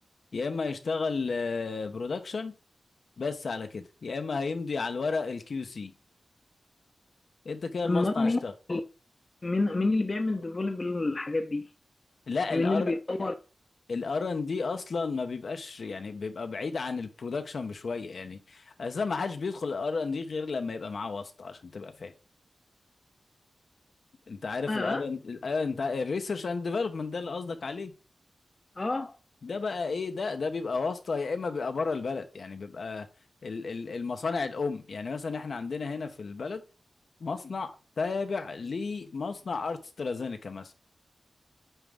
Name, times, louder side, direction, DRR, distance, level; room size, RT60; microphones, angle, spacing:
voice 1, 0.3-2.5 3.2-5.9 7.4-8.5 12.3-12.9 13.9-22.1 24.3-27.9 29.4-33.1 33.4-36.6 37.2-40.7, left 4 dB, 65° left, 0.8 m, -32 dB
voice 2, 7.8-8.4 8.7-8.8 9.4-11.6 12.5-13.3 24.7-25.0 28.8-29.1, left 2 dB, 35° left, 0.7 m, -28 dB
8.9 x 3.6 x 3.5 m
wide cardioid pair, 110°, 0 cm